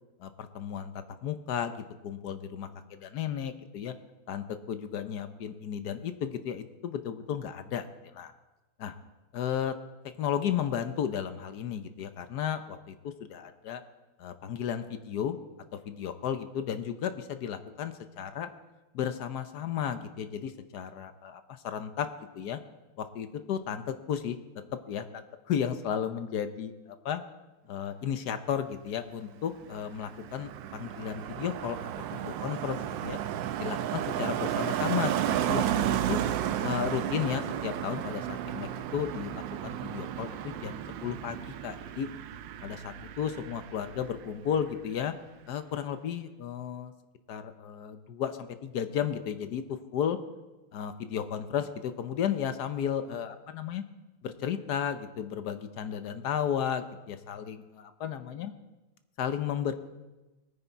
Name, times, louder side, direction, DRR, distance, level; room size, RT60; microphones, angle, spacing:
voice 1, 0.2-3.9 4.3-7.8 8.1-8.3 8.8-8.9 9.3-9.7 10.2-13.8 14.2-15.4 15.7-18.5 18.9-22.1 22.3-22.6 23.0-24.4 24.9-27.2 27.7-31.8 32.1-33.2 33.6-36.2 36.6-42.1 42.6-45.1 45.5-46.9 47.3-50.2 50.7-53.8 54.2-58.5 59.2-59.7, left 8 dB, 60° left, 10 dB, 1.1 m, -34 dB
Car passing by, 29.5-44.3 44.5-44.9, right 11 dB, 75° right, 1.2 m, -33 dB
20.5 x 9.5 x 4.6 m, 1.1 s
omnidirectional pair, 2.4 m